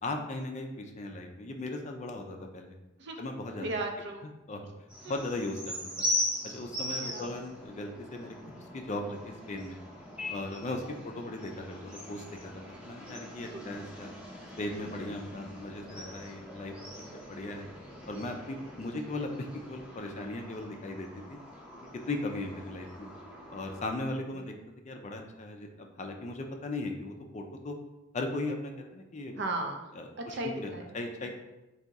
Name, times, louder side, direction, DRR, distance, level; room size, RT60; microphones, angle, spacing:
voice 1, 0.0-2.7 3.2-3.7 4.5-4.7 5.1-6.1 6.4-8.4 8.7-9.8 10.3-14.1 14.6-16.7 17.1-17.7 18.1-21.4 22.1-23.1 23.5-24.5 24.8-27.8 28.1-29.4 29.9-30.1 30.4-31.3, left 2 dB, 35° left, 3 dB, 0.4 m, -37 dB
voice 2, 3.6-4.3 5.0-5.2 6.9-7.3 13.5-13.6 24.3-24.5 29.4-29.9 30.2-30.9 31.2-31.3, right 2 dB, 60° right, 3 dB, 0.6 m, -36 dB
sound 1, 4.9-23.9, left 1 dB, 5° right, 0.7 m, -40 dB
3.5 x 2.7 x 4.0 m, 1.0 s
head